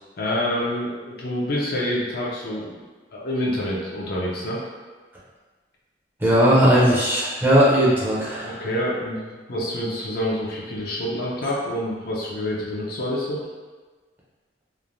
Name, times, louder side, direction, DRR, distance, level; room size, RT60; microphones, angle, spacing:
voice 1, 0.2-2.7 3.1-4.6 8.4-13.4, left 1 dB, 60° left, -4 dB, 0.6 m, -27 dB
voice 2, 6.2-8.6, equal, 10° right, -7 dB, 0.6 m, -18 dB
3.1 x 2.1 x 2.5 m, 1.3 s
head